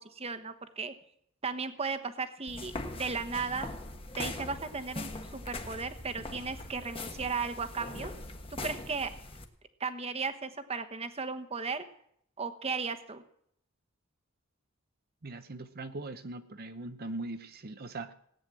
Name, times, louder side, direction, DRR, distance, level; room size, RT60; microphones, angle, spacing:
voice 1, 0.1-0.9 1.4-3.7 4.2-8.1 8.6-9.1 9.8-11.8 12.4-13.2, right 4 dB, 30° right, 9 dB, 1.1 m, -35 dB
sound 1, 2.5-9.4, left 2 dB, 25° left, 1.4 m, -41 dB
voice 2, 15.2-18.1, right 2 dB, 45° right, 8 dB, 0.8 m, -40 dB
17.5 x 9.3 x 7.6 m, 0.70 s
head